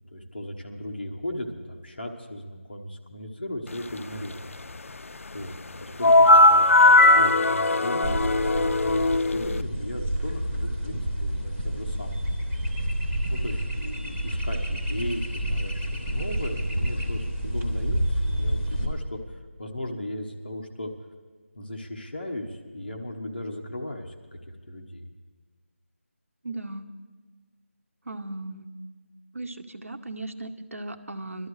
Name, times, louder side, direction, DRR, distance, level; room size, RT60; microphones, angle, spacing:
voice 1, 0.1-4.5 5.3-9.0 9.3-12.2 13.3-20.9 21.5-25.1, left 1 dB, 45° left, 1 dB, 1.2 m, -36 dB
sound 1, 6.0-9.6, left 2 dB, 75° left, 0.4 m, -18 dB
sound 2, 8.0-18.8, equal, 5° right, 0.7 m, -29 dB
voice 2, 26.4-26.9 28.0-28.7 29.3-31.5, right 2 dB, 75° right, 8 dB, 1.0 m, -37 dB
22.5 x 12.5 x 3.2 m, 1.4 s
figure-of-eight pair, 180°, 7 cm